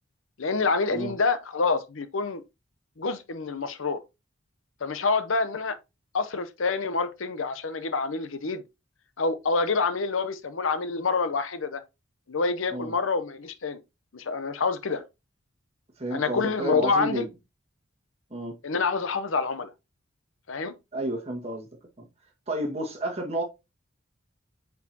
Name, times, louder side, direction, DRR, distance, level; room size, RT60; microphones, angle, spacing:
voice 1, 0.4-2.4 3.0-4.0 4.8-5.8 6.1-8.6 9.2-11.8 12.3-13.8 14.1-15.0 16.1-17.3 18.6-19.7 20.5-20.7, left 4 dB, 80° left, 0.7 m, -27 dB
voice 2, 16.0-17.3 18.3-18.5 20.9-21.7 22.0-22.1 22.5-23.4, right 1 dB, 30° right, 1.7 m, -31 dB
8.2 x 4.7 x 2.8 m
head